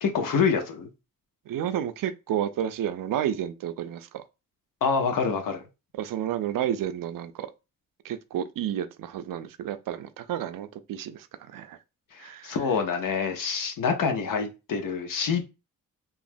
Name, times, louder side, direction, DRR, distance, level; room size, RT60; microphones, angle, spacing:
voice 1, 0.0-0.9 4.8-5.6 12.1-15.4, left 5 dB, 75° left, 0.7 m, -26 dB
voice 2, 1.5-4.2 6.0-7.5 8.0-11.3 11.5-11.8 12.2-12.6, right 10 dB, 80° right, 0.5 m, -31 dB
3.0 x 2.4 x 2.5 m
cardioid pair, 60°, 33 cm